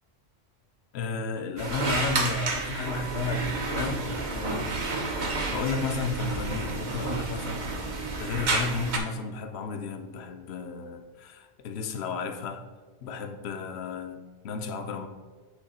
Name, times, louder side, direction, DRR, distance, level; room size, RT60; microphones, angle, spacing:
voice 1, 0.9-5.2 5.5-12.6 13.0-15.1, left 4 dB, 65° left, 7 dB, 0.8 m, -33 dB
sound 1, 1.6-9.0, right 3 dB, 45° right, 0.7 m, -30 dB
8.3 x 3.2 x 4.1 m, 1.4 s
omnidirectional pair, 1.3 m